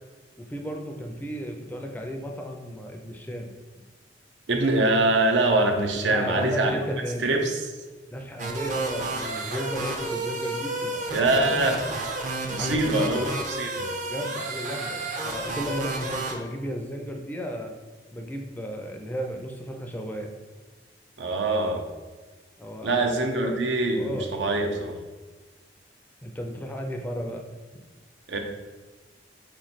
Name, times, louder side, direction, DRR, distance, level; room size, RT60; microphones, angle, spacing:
voice 1, 0.4-3.5 6.1-7.4 8.1-11.6 12.5-13.3 14.1-17.7 18.1-20.3 22.6-23.1 23.4-23.6 23.9-24.3 26.2-27.4 27.7-27.8, equal, 10° left, 3 dB, 0.4 m, -34 dB
voice 2, 4.5-6.7 7.2-7.6 11.1-11.8 12.5-13.9 21.2-21.8 22.8-25.0 28.3-28.4, right 2 dB, 85° right, 3 dB, 0.6 m, -24 dB
sound 1, 8.4-16.3, right 2 dB, 45° right, 0.5 m, -31 dB
4.3 x 3.1 x 4.1 m, 1.3 s
head